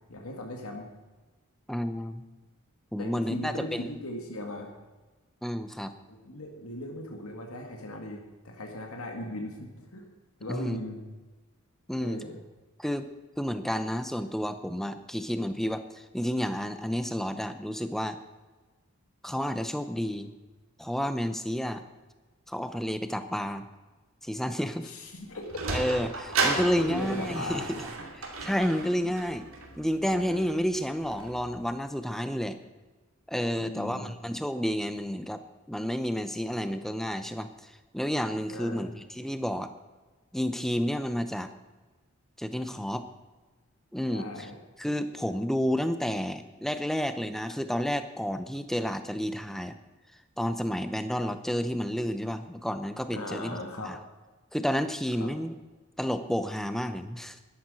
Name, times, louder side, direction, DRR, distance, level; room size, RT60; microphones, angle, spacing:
voice 1, 0.1-0.9 3.0-4.7 6.1-10.0 10.4-11.0 12.0-12.4 24.8-25.5 26.5-27.7 33.6-34.1 38.5-38.8 44.1-44.6 53.1-53.9 55.2-55.3, left 1 dB, 85° left, 2 dB, 2.0 m, -38 dB
voice 2, 1.7-2.2 2.9-3.9 5.4-5.9 10.5-10.8 11.9-12.2 12.8-13.1 13.4-18.2 19.2-20.3 20.8-21.8 22.5-23.7 24.2-24.9 25.7-27.9 28.2-29.4 29.8-32.6 33.3-35.4 35.7-39.7 40.3-41.5 42.4-43.0 43.9-44.5 44.8-49.8 50.4-54.0 54.5-55.6 56.0-57.4, equal, ahead, 10 dB, 0.7 m, -30 dB
Sliding door, 25.1-31.6, right 3 dB, 70° right, 2.6 m, -34 dB
12.5 x 11.0 x 6.4 m, 1.2 s
head